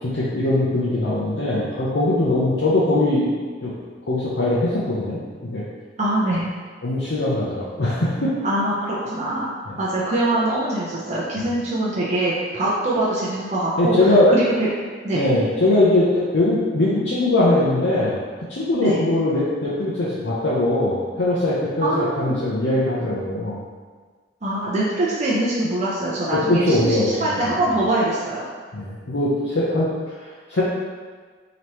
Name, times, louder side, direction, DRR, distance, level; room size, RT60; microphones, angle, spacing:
voice 1, 0.0-3.3 3.6-3.7 4.1-5.6 6.8-8.3 9.7-9.8 11.4-11.5 13.8-14.3 15.1-16.1 16.3-18.2 18.5-23.6 26.3-27.5 28.7-29.9 30.2-30.3 30.5-30.6, left 2 dB, 85° left, -8 dB, 0.7 m, -21 dB
voice 2, 6.0-6.5 8.4-9.5 9.8-14.7 15.0-15.3 18.8-19.0 21.8-22.3 24.4-28.4, right 1 dB, 40° right, -7 dB, 0.6 m, -23 dB
5.1 x 2.9 x 3.0 m, 1.5 s
head